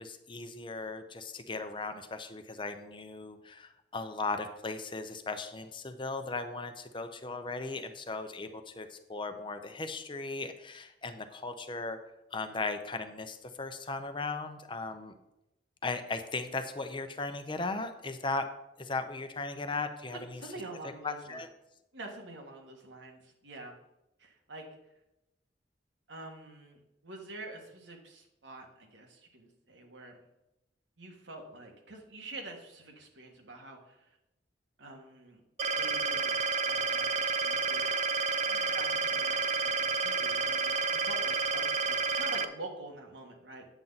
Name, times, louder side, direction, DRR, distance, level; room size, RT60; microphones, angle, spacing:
voice 1, 0.0-12.0 12.3-15.1 15.8-18.5 18.8-20.4 21.0-21.5, left 3 dB, 30° left, 8 dB, 0.7 m, -37 dB
voice 2, 20.1-21.4 21.9-23.8 24.2-24.7 26.1-30.2 31.0-34.2 34.8-35.4 35.8-37.8 38.4-43.7, right 2 dB, 90° right, 2 dB, 1.7 m, -47 dB
sound 1, 35.6-42.5, right 4 dB, 40° right, 0.5 m, -30 dB
9.0 x 7.3 x 4.1 m, 0.89 s
head